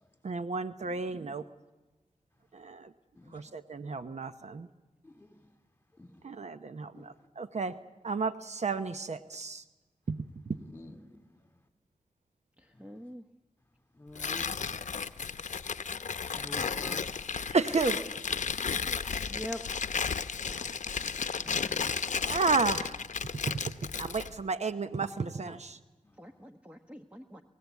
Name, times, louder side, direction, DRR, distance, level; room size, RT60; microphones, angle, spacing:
voice 1, 0.2-1.4 2.5-2.9 3.3-4.7 6.2-7.7 8.0-9.6 10.1-10.6 17.3-18.0 21.0-21.1 22.3-23.0 24.0-25.8, right 4 dB, 60° right, 11 dB, 0.9 m, -32 dB
voice 2, 5.0-5.3 6.0-6.1 6.9-7.1 10.5-11.0 14.0-14.5 16.3-17.0 21.4-22.3, left 2 dB, 15° left, 7 dB, 2.7 m, -47 dB
voice 3, 12.8-13.2 15.0-15.1 19.3-19.6 25.5-25.6 26.2-27.4, left 1 dB, 10° right, 5 dB, 1.1 m, -43 dB
Tearing, 14.1-24.3, left 6 dB, 70° left, 0.7 m, -34 dB
28.5 x 15.5 x 8.3 m, 1.1 s
cardioid pair, 50°, 13 cm